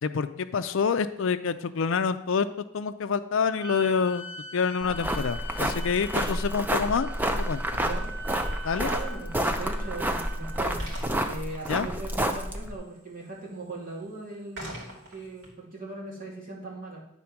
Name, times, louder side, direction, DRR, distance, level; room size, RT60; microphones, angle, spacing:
voice 1, 0.0-4.2 4.5-7.1 7.4-7.8 8.6-8.9 11.7-11.9, left 5 dB, 65° left, 11 dB, 0.4 m, -27 dB
sound 1, 3.6-11.1, equal, 20° left, 1.6 m, -43 dB
sound 2, 4.1-15.5, right 1 dB, 55° right, 2.7 m, -49 dB
sound 3, 4.8-12.7, right 1 dB, 10° right, 0.5 m, -29 dB
voice 2, 8.8-10.8 11.2-17.0, right 2 dB, 40° right, -5 dB, 2.7 m, -39 dB
9.9 x 4.3 x 5.8 m, 0.77 s
head